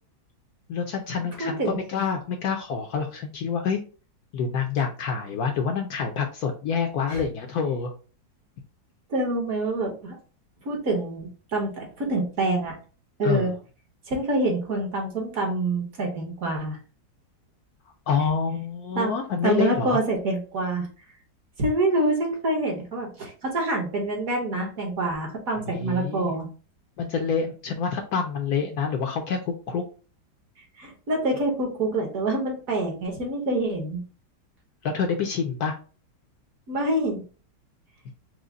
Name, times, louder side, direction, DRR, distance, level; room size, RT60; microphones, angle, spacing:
voice 1, 0.7-3.8 4.3-7.9 13.2-13.5 18.1-20.0 25.7-26.3 27.0-29.8 34.8-35.7, left 6 dB, 70° left, 3 dB, 0.9 m, -27 dB
voice 2, 1.4-1.8 7.1-7.2 9.1-10.2 10.6-12.8 13.2-13.5 14.1-16.8 18.9-19.1 19.4-20.9 21.6-26.5 30.8-34.0 36.7-37.2, right 2 dB, 55° right, 1 dB, 1.4 m, -26 dB
4.8 x 2.1 x 3.8 m, 0.37 s
omnidirectional pair, 2.0 m